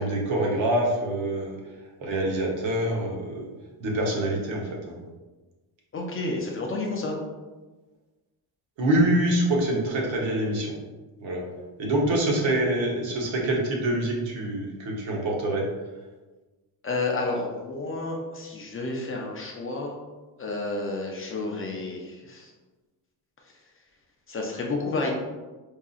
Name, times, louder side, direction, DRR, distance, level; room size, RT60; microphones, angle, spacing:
voice 1, 0.0-1.6 2.0-3.4 3.8-5.0 8.8-10.8 11.2-11.4 11.8-15.7, right 1 dB, 80° right, -2 dB, 1.0 m, -25 dB
voice 2, 5.9-7.2 16.8-20.0 20.4-22.5 24.3-25.1, left 3 dB, 30° left, 0 dB, 0.5 m, -30 dB
4.6 x 2.7 x 2.4 m, 1.2 s
cardioid pair, 150°, 45 cm